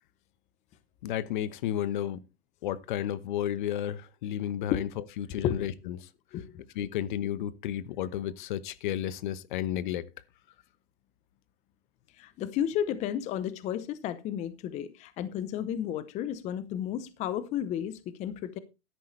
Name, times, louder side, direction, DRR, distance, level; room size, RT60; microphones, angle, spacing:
voice 1, 1.0-2.2 2.6-6.1 6.7-10.1, left 11 dB, 50° left, 1.0 m, -32 dB
voice 2, 6.3-6.6 12.2-18.6, left 10 dB, 20° left, 0.8 m, -32 dB
12.5 x 11.0 x 3.2 m
hypercardioid pair, 140°, 32 cm